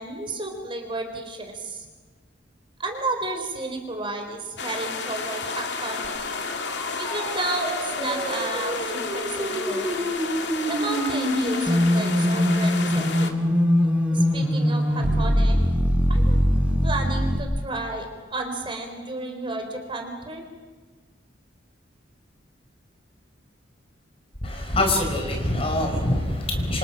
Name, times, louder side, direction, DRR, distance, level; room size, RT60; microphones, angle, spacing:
voice 1, 0.0-1.9 2.8-6.2 7.0-9.9 10.7-13.4 14.1-15.6 16.1-16.4 16.8-20.4, right 2 dB, 25° right, 4 dB, 4.1 m, -32 dB
sound 1, 4.6-13.3, left 4 dB, 65° left, 2.5 m, -31 dB
sound 2, 6.0-17.4, equal, 5° right, 4.9 m, -23 dB
voice 2, 24.4-26.8, left 1 dB, 30° left, 3 dB, 5.0 m, -24 dB
28.5 x 26.5 x 6.1 m, 1.4 s
head